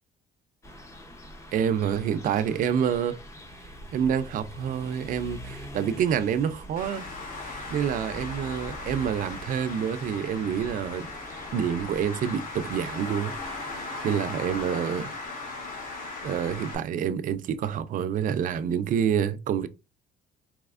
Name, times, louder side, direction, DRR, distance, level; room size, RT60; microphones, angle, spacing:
sound 1, 0.6-13.8, equal, 15° left, 0.7 m, -45 dB
voice 1, 1.5-3.2 3.9-7.1 7.7-11.1 11.4-13.3 13.7-15.1 16.2-19.7, right 8 dB, 55° right, 0.4 m, -27 dB
Traffic noise roadway noise, 6.8-16.8, left 3 dB, 55° left, 1.5 m, -38 dB
4.1 x 2.9 x 2.4 m
cardioid pair, 110°, 17 cm